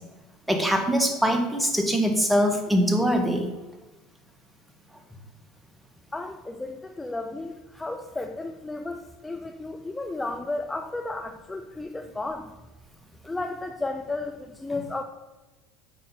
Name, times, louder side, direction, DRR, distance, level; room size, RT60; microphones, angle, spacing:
voice 1, 0.5-3.5, equal, 10° right, 4 dB, 1.5 m, -23 dB
voice 2, 6.1-12.5 13.2-15.0, left 2 dB, 15° left, 5 dB, 0.6 m, -33 dB
8.3 x 4.3 x 5.2 m, 1.2 s
hypercardioid pair, 75°, 0 cm